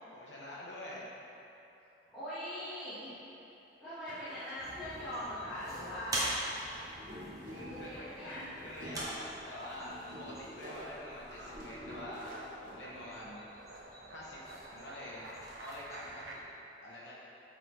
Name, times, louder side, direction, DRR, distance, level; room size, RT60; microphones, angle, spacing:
voice 1, 0.1-1.1 7.5-13.5 14.1-14.4 14.7-15.3 15.6-16.4 16.8-17.1, left 1 dB, 80° left, -5 dB, 0.8 m, -46 dB
voice 2, 2.1-3.1 3.8-6.4 7.5-8.4, left 1 dB, ahead, -18 dB, 1.3 m, -41 dB
sound 1, 4.1-4.5 5.8-6.1 6.7-13.1, equal, 45° right, 0.9 m, -48 dB
sound 2, 4.6-16.4, right 1 dB, 20° right, 0.7 m, -44 dB
sound 3, 7.0-7.2 7.6-16.4, right 2 dB, 75° right, 0.6 m, -52 dB
8.0 x 3.8 x 3.1 m, 3.0 s
head